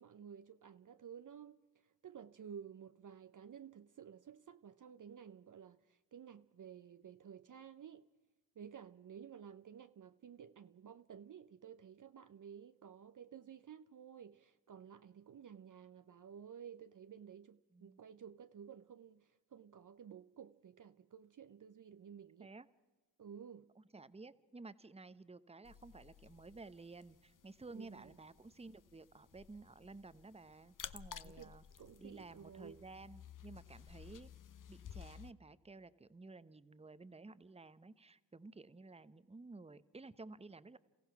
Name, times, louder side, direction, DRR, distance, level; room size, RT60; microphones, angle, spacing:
voice 1, 0.0-8.1 8.6-22.5 23.2-23.7 27.7-28.1 31.2-32.8, right 8 dB, 40° right, 0.7 m, -54 dB
voice 2, 23.8-31.6 32.0-34.3 34.7-40.8, right 3 dB, 15° right, 0.9 m, -54 dB
sound 1, 25.6-35.3, left 8 dB, 45° left, 0.8 m, -55 dB
28.5 x 15.0 x 5.9 m
supercardioid pair, 45°, 46 cm